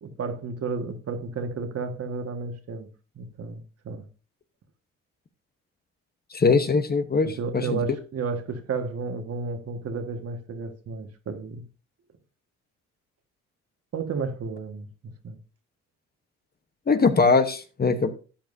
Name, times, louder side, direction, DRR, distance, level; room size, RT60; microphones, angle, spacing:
voice 1, 0.0-2.9 3.1-4.1 7.2-11.6 13.9-14.9 15.2-15.4, right 4 dB, 55° right, 1.6 m, -32 dB
voice 2, 6.3-7.8 16.9-18.1, left 4 dB, 30° left, 1.0 m, -21 dB
13.0 x 9.0 x 2.6 m
cardioid pair, 90°, 30 cm